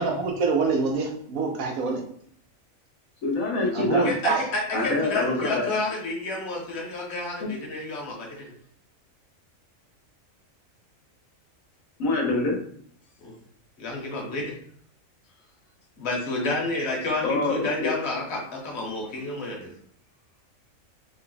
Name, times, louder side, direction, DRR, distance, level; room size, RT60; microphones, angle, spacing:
voice 1, 0.0-2.0 3.7-4.4, right 4 dB, 90° right, 1 dB, 1.2 m, -25 dB
voice 2, 3.2-4.1 4.7-5.7 12.0-12.6 17.2-17.9, left 2 dB, 85° left, -1 dB, 1.4 m, -25 dB
voice 3, 4.0-8.5 13.2-13.4 13.8-14.5 16.0-19.7, left 2 dB, 55° left, -1 dB, 1.3 m, -30 dB
3.7 x 2.2 x 3.9 m, 0.63 s
omnidirectional pair, 1.4 m